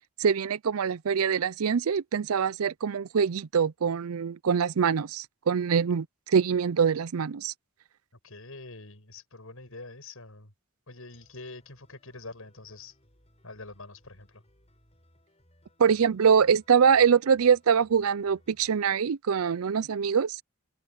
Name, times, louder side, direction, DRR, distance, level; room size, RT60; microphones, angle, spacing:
voice 1, 0.2-7.5 15.8-20.4, right 6 dB, 80° right, 0.5 m, -24 dB
voice 2, 8.2-10.5 10.9-13.0 13.4-14.4, left 3 dB, 70° left, 6.9 m, -45 dB
sound 1, 11.1-18.7, left 1 dB, 30° left, 6.9 m, -64 dB
head